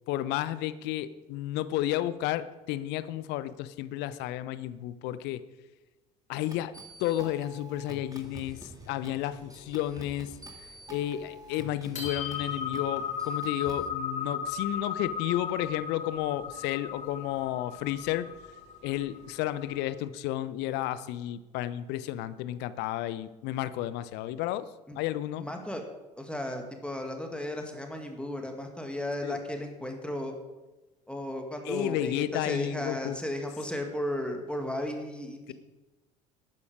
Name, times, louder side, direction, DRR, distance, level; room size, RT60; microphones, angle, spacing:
voice 1, 0.1-5.4 6.3-6.7 7.0-10.3 10.9-18.3 18.8-24.7 24.9-25.5 29.2-29.4 31.6-33.2, left 13 dB, 60° left, 15 dB, 0.7 m, -32 dB
sound 1, 6.5-13.9, right 1 dB, 20° right, 1.9 m, -48 dB
sound 2, 8.1-10.0 10.3-10.4 10.8-11.4 11.7-19.8, left 6 dB, 35° left, 4.2 m, -37 dB
voice 2, 25.4-25.8 26.2-30.3 31.1-35.5, left 1 dB, 5° left, 4 dB, 2.0 m, -35 dB
12.0 x 9.6 x 5.1 m, 1.1 s
figure-of-eight pair, 65°, 20 cm